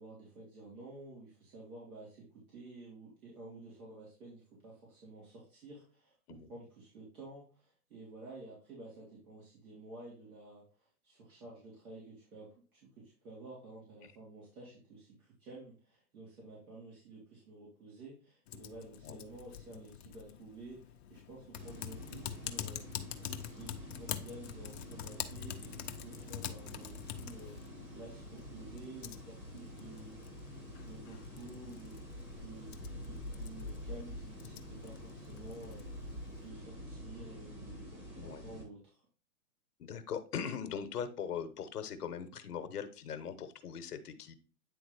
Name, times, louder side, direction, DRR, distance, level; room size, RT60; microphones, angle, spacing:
voice 1, 0.0-32.0 32.4-35.8 36.3-39.0, right 2 dB, 70° right, -6 dB, 3.4 m, -51 dB
Typing, 18.5-36.5, left 11 dB, 45° left, 0.6 m, -47 dB
sound 1, 21.5-38.6, left 1 dB, 25° right, 2.1 m, -47 dB
voice 2, 39.8-44.3, left 7 dB, 80° left, 9 dB, 1.0 m, -40 dB
9.2 x 3.7 x 3.3 m, 0.36 s
hypercardioid pair, 135°, 45 cm